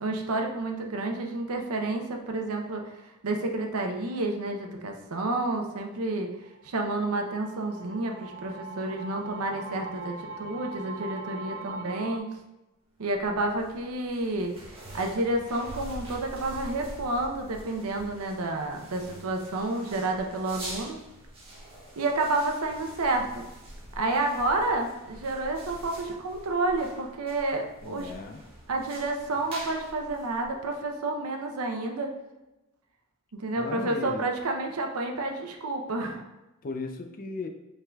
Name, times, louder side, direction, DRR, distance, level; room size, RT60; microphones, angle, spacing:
voice 1, 0.0-2.9 3.2-6.3 6.6-12.3 13.0-14.5 14.9-21.0 22.0-23.4 24.0-28.1 28.7-32.1 33.3-36.2, right 2 dB, 90° right, 3 dB, 0.7 m, -30 dB
sound 1, 6.5-12.2, right 4 dB, 55° right, 0.3 m, -41 dB
sound 2, 13.0-30.9, right 1 dB, 25° right, 1.3 m, -45 dB
voice 2, 27.8-28.4 33.6-34.3 36.6-37.5, left 3 dB, 40° left, 5 dB, 0.5 m, -36 dB
5.4 x 3.7 x 2.3 m, 0.97 s
head